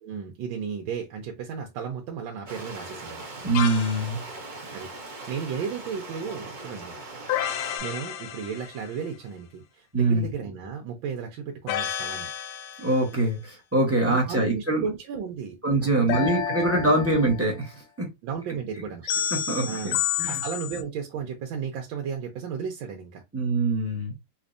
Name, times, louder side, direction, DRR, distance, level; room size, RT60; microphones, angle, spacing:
voice 1, 0.0-3.3 4.7-7.0 7.8-12.3 14.0-16.3 16.8-16.9 18.2-19.0 19.6-20.0 20.3-23.2, right 6 dB, 90° right, 1.4 m, -34 dB
Stream, 2.5-7.8, right 2 dB, 75° right, 0.4 m, -40 dB
voice 2, 3.4-4.2 9.9-10.3 12.8-14.8 15.6-18.1 19.3-20.4 23.3-24.1, right 2 dB, 15° right, 0.5 m, -24 dB
sound 1, 3.5-4.1 7.3-9.0 11.7-13.1 16.1-17.6 19.1-20.8, left 10 dB, 75° left, 0.9 m, -30 dB
4.2 x 2.7 x 2.5 m
omnidirectional pair, 2.1 m